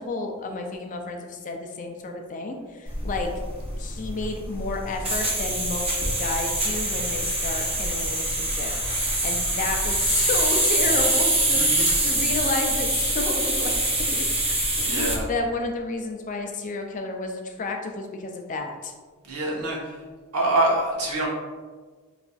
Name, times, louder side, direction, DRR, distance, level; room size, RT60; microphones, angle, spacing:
voice 1, 0.0-3.3 3.8-8.7 9.2-18.9, left 3 dB, 35° left, 3 dB, 0.4 m, -31 dB
sound 1, 2.9-15.2, right 1 dB, 25° right, 0.7 m, -24 dB
voice 2, 11.6-11.9 14.8-15.3 19.2-19.8 20.3-21.3, right 2 dB, 90° right, -3 dB, 0.9 m, -25 dB
4.0 x 2.5 x 2.3 m, 1.4 s
head